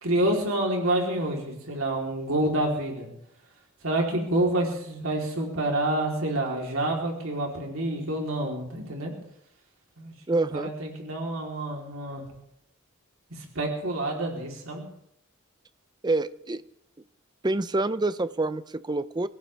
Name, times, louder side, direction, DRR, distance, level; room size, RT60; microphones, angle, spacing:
voice 1, 0.0-3.1 3.8-9.1 10.0-12.2 13.3-14.9, right 1 dB, 80° right, 0 dB, 3.5 m, -28 dB
voice 2, 10.3-10.7 16.0-16.6 17.4-19.3, right 2 dB, 20° right, 14 dB, 0.5 m, -27 dB
23.5 x 15.5 x 3.4 m, 0.75 s
head